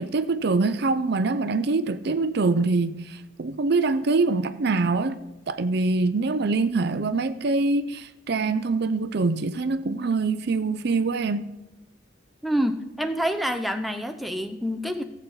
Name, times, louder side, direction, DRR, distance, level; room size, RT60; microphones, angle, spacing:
voice 1, 0.0-5.2 5.5-11.5, right 3 dB, 55° right, 0.5 m, -24 dB
voice 2, 12.4-15.0, equal, ahead, 0.6 m, -27 dB
15.5 x 8.1 x 4.0 m
head